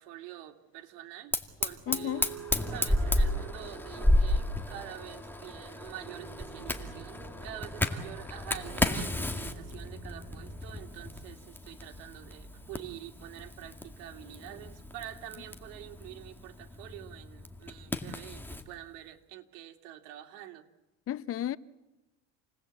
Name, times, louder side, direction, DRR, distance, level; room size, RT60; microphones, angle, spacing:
voice 1, 0.0-20.7, right 13 dB, 85° right, 2.5 m, -46 dB
Fire, 1.3-18.7, left 1 dB, 5° left, 2.0 m, -33 dB
voice 2, 1.9-2.3 21.1-21.6, left 12 dB, 45° left, 0.9 m, -33 dB
sound 1, 1.9-11.6, right 9 dB, 55° right, 3.4 m, -50 dB
29.0 x 19.5 x 8.2 m
cardioid pair, 110°, 31 cm